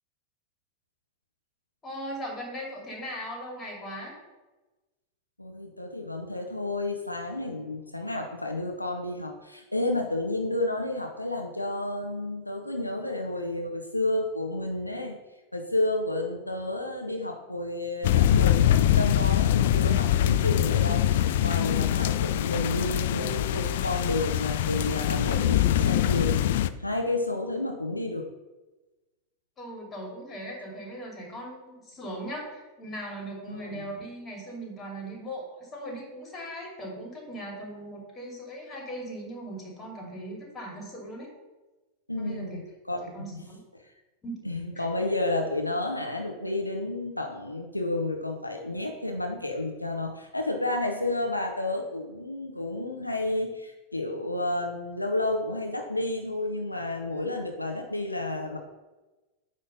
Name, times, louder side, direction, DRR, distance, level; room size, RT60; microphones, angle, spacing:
voice 1, 1.8-4.1 29.6-41.3 42.2-42.6 43.1-43.6 44.2-44.4 44.8-44.9, right 1 dB, 20° left, -1 dB, 2.4 m, -39 dB
voice 2, 5.4-15.2 15.5-26.5 26.8-28.3 33.5-33.8 42.1-43.0 43.3-43.4 43.7-43.8 44.4-58.6, left 2 dB, 85° left, 2 dB, 0.7 m, -31 dB
sound 1, 18.0-26.7, left 11 dB, 55° left, 0.3 m, -23 dB
8.8 x 3.2 x 5.3 m, 1.1 s
figure-of-eight pair, 90°, 0 cm